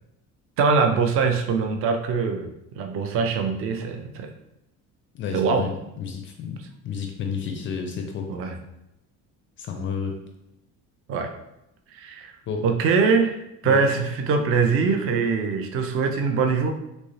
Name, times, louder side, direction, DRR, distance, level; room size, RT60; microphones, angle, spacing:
voice 1, 0.6-2.5 2.8-4.3 5.3-5.7 8.3-8.6 11.1-11.3 11.9-12.3 12.6-16.7, right 5 dB, 35° right, 5 dB, 0.5 m, -23 dB
voice 2, 5.1-6.6 6.8-8.3 9.6-10.2 12.5-12.6 13.6-13.8, left 6 dB, 30° left, 3 dB, 0.4 m, -31 dB
3.0 x 2.7 x 2.6 m, 0.86 s
figure-of-eight pair, 55°, 42 cm